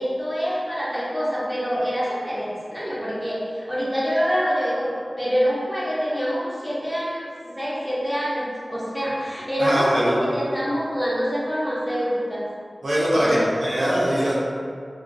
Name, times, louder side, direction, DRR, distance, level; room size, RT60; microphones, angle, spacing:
voice 1, 0.0-4.9 5.2-12.5 13.1-13.5, equal, ahead, -7 dB, 0.7 m, -25 dB
voice 2, 9.6-10.2 12.8-14.3, equal, 85° right, -8 dB, 0.5 m, -22 dB
2.3 x 2.2 x 2.5 m, 2.2 s
cardioid pair, 40°, 0 cm